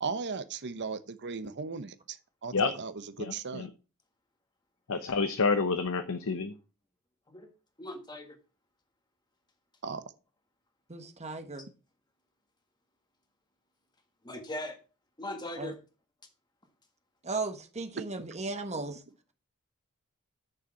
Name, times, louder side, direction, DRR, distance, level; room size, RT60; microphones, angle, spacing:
voice 1, 0.0-3.7 9.8-10.0, right 4 dB, 55° right, 0.9 m, -37 dB
voice 2, 3.2-3.7 4.9-6.5, left 4 dB, 70° left, 0.9 m, -29 dB
voice 3, 7.8-8.3 14.2-14.8 15.2-15.7, left 1 dB, 20° left, 1.6 m, -39 dB
voice 4, 10.9-11.7 15.6-15.7 17.2-19.0, right 3 dB, 30° right, 1.3 m, -36 dB
9.2 x 6.7 x 4.4 m
head